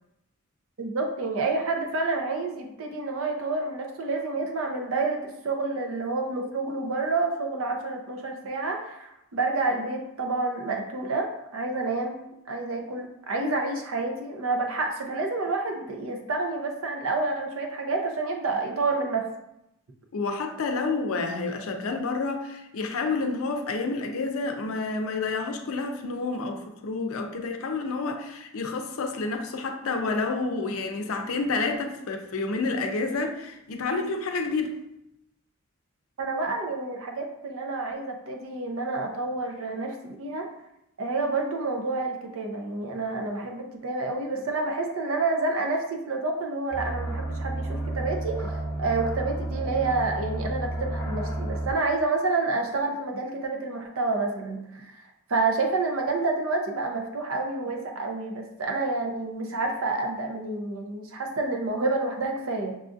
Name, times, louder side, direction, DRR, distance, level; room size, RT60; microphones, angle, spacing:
voice 1, 0.8-12.2 12.5-19.3 36.2-40.5 41.0-54.9 55.3-62.7, right 3 dB, 70° right, 2 dB, 0.6 m, -29 dB
voice 2, 20.1-34.7, left 3 dB, 70° left, 5 dB, 0.5 m, -29 dB
sound 1, 46.7-51.7, right 2 dB, 15° left, 0.9 m, -31 dB
6.1 x 2.4 x 2.5 m, 0.84 s
head